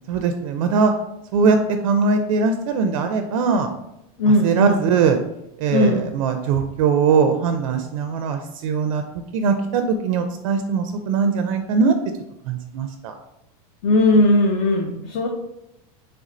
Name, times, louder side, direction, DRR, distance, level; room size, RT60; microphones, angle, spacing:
voice 1, 0.1-0.9 1.3-1.6 1.8-3.7 4.4-5.2 5.6-9.0 9.3-11.9 12.5-13.1, right 5 dB, 60° right, 6 dB, 0.4 m, -20 dB
voice 2, 4.2-4.8 5.7-6.1 13.8-15.3, left 1 dB, 35° left, 1 dB, 0.4 m, -18 dB
3.3 x 2.5 x 4.1 m, 0.86 s
supercardioid pair, 165°, 19 cm